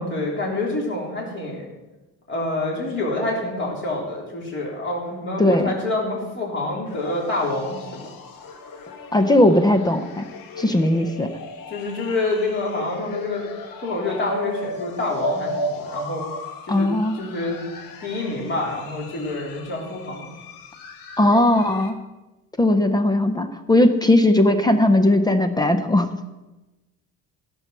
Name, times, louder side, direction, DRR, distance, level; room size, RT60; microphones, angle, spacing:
voice 1, 0.0-1.7 2.3-8.1 11.7-13.4 13.8-16.2 16.7-17.6 18.0-20.3, left 2 dB, 35° left, -3 dB, 3.5 m, -27 dB
voice 2, 5.4-5.7 9.1-10.3 10.6-11.3 16.7-17.2 21.2-22.0 22.6-26.1, left 1 dB, 10° left, 8 dB, 0.5 m, -18 dB
sound 1, 6.8-21.9, left 1 dB, 85° left, 1.5 m, -35 dB
15.5 x 6.1 x 6.7 m, 1.1 s
cardioid pair, 170°, 33 cm